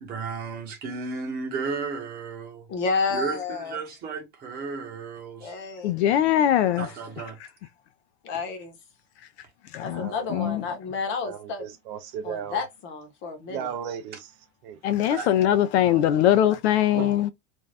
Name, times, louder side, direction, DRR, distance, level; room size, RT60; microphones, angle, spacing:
voice 1, 0.0-2.7 3.1-5.5 6.8-7.4 15.1-15.3, right 5 dB, 25° right, 1.0 m, -33 dB
voice 2, 2.7-3.8 5.4-6.0 8.2-8.7 9.8-11.7 12.2-13.7, left 4 dB, 35° left, 0.9 m, -31 dB
voice 3, 5.8-6.9 9.7-10.6 14.8-17.3, left 11 dB, 65° left, 0.5 m, -21 dB
voice 4, 9.9-10.6 11.2-12.6 13.5-14.3 14.6-15.0 15.4-15.6 15.8-16.0 16.9-17.2, right 8 dB, 50° right, 0.5 m, -36 dB
2.6 x 2.3 x 3.3 m
supercardioid pair, 155°, 35 cm